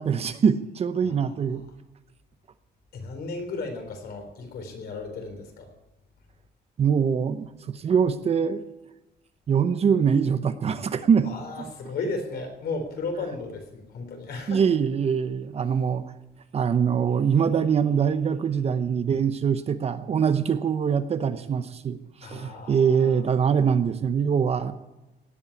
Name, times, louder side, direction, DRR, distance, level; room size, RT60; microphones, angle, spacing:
voice 1, 0.0-1.6 6.8-8.6 9.5-11.3 14.5-16.0 16.5-24.7, right 7 dB, 35° right, 11 dB, 0.8 m, -23 dB
voice 2, 1.0-1.4 2.9-5.7 11.2-14.6 22.2-23.2, left 3 dB, 60° left, 4 dB, 3.9 m, -35 dB
17.5 x 8.7 x 8.4 m, 1.0 s
cardioid pair, 165°, 18 cm